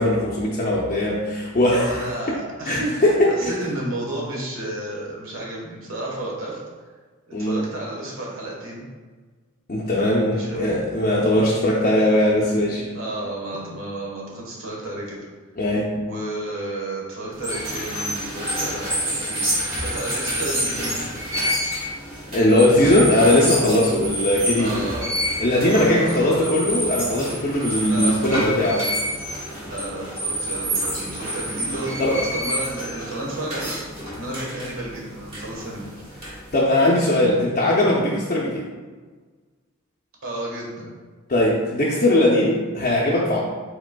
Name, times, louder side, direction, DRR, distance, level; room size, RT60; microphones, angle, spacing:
voice 1, 0.0-2.0 2.7-3.5 7.3-7.6 9.7-12.9 15.6-16.1 22.3-24.7 25.4-28.8 32.0-32.2 36.5-38.6 41.3-43.4, left 1 dB, 40° left, -4 dB, 0.5 m, -19 dB
voice 2, 1.6-6.6 7.3-8.8 9.9-10.8 12.9-15.2 16.0-21.0 24.6-25.2 25.5-26.6 27.8-28.9 29.6-33.7 34.1-35.9 40.2-40.9, right 1 dB, 80° right, -3 dB, 1.2 m, -32 dB
sound 1, 17.3-36.6, equal, 30° right, 1.5 m, -28 dB
4.8 x 4.1 x 2.2 m, 1.4 s
head